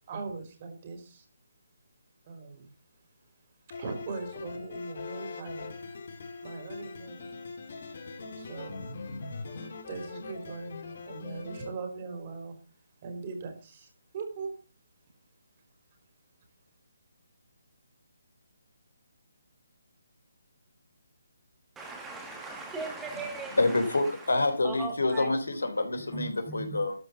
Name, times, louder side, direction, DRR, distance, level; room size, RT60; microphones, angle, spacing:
voice 1, 0.1-1.2 2.3-2.7 3.7-5.7 6.4-7.4 8.4-8.9 9.9-10.7 11.1-12.5 13.0-14.5, right 4 dB, 35° right, 6 dB, 4.1 m, -40 dB
sound 1, 3.7-11.7, left 4 dB, 55° left, 2.6 m, -41 dB
voice 2, 21.8-24.3 24.6-25.3 26.1-26.8, right 3 dB, 10° right, 3 dB, 2.0 m, -39 dB
voice 3, 23.6-26.9, left 2 dB, 85° left, 6 dB, 3.5 m, -27 dB
13.0 x 5.5 x 7.4 m, 0.36 s
hypercardioid pair, 155°, 0 cm